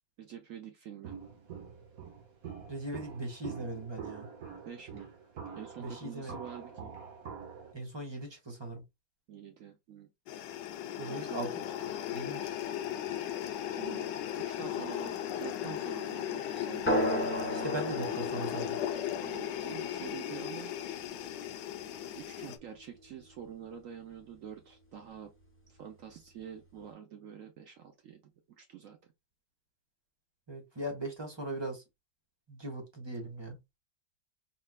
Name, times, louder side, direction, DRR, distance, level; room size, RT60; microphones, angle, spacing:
voice 1, 0.2-1.2 4.6-5.1 5.5-6.9 9.3-10.1 11.1-11.5 13.8-14.1 14.4-16.9 19.2-20.7 22.2-25.3 25.7-28.3 28.6-29.0, right 9 dB, 80° right, 0.7 m, -47 dB
Walk footsteps, 1.0-7.7, right 6 dB, 50° right, 1.4 m, -45 dB
voice 2, 2.7-4.3 5.8-6.4 7.7-8.8 11.0-11.6 12.1-12.4 17.5-18.8 30.5-31.8 32.5-33.6, right 1 dB, 15° right, 1.1 m, -39 dB
sound 1, 10.3-22.6, left 11 dB, 70° left, 1.2 m, -37 dB
sound 2, 16.9-21.9, equal, 5° left, 1.3 m, -35 dB
4.2 x 3.8 x 2.2 m
omnidirectional pair, 2.1 m